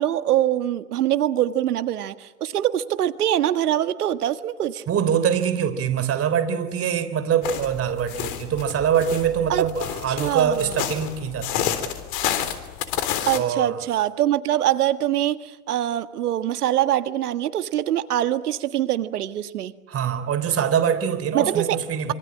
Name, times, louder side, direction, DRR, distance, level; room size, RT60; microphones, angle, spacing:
voice 1, 0.0-4.8 9.5-9.7 10.1-10.7 13.3-19.7 21.3-21.8, right 12 dB, 80° right, 12 dB, 1.6 m, -23 dB
voice 2, 4.9-11.9 13.4-13.8 19.9-22.1, right 8 dB, 30° right, 11 dB, 3.4 m, -24 dB
sound 1, 7.4-13.4, left 10 dB, 50° left, 3.6 m, -30 dB
26.5 x 25.5 x 8.8 m, 1.1 s
hypercardioid pair, 100°, 45 cm